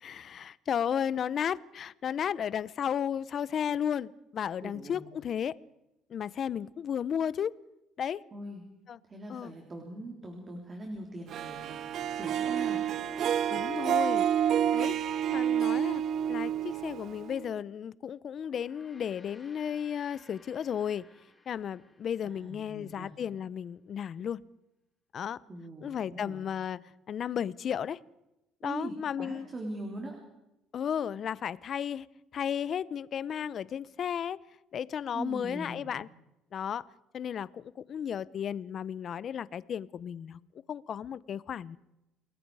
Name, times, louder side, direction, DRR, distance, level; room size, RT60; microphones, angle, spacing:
voice 1, 0.0-5.5 6.1-7.6 8.0-8.2 8.9-9.0 9.3-9.5 13.5-14.3 14.7-14.9 15.3-16.0 16.3-21.1 21.5-24.4 25.1-25.4 25.8-26.8 27.1-28.0 28.6-29.5 30.7-32.1 32.3-34.4 34.7-36.1 36.5-36.8 37.1-40.4 40.7-41.8, left 8 dB, 45° left, 0.7 m, -34 dB
voice 2, 4.6-5.0 8.3-8.6 9.1-12.8 22.2-23.1 25.5-26.4 28.6-30.2 35.1-35.9, right 1 dB, 25° right, 3.6 m, -41 dB
Harp, 11.3-17.6, right 10 dB, 50° right, 0.7 m, -29 dB
Gong, 18.4-23.0, left 2 dB, 10° left, 6.4 m, -60 dB
29.0 x 20.5 x 4.8 m
cardioid pair, 135°, 0 cm